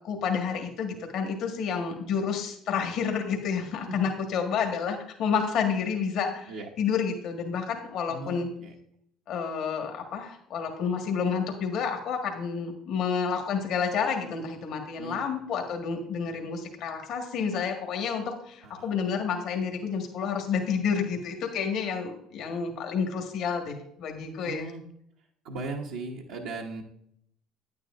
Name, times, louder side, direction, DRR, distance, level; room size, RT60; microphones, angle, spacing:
voice 1, 0.0-6.5 6.8-8.5 9.3-24.7, left 6 dB, 65° left, 3 dB, 1.6 m, -30 dB
voice 2, 8.1-8.7 15.0-15.3 18.6-19.0 24.4-24.8 25.4-26.8, right 3 dB, 85° right, -2 dB, 1.0 m, -38 dB
9.4 x 9.4 x 2.5 m, 0.70 s
supercardioid pair, 80°, 0 cm